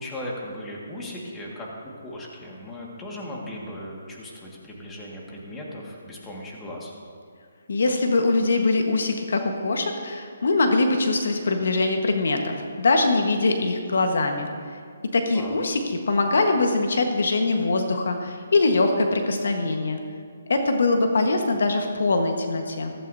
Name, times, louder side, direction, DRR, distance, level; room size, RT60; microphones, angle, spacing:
voice 1, 0.0-1.7 2.0-6.9 15.3-15.6, left 1 dB, 10° left, -3 dB, 1.8 m, -37 dB
voice 2, 7.7-14.5 15.1-15.8 16.1-20.0 20.5-22.9, left 3 dB, 70° left, 5 dB, 1.3 m, -22 dB
15.5 x 15.0 x 2.7 m, 2.1 s
hypercardioid pair, 160°, 0 cm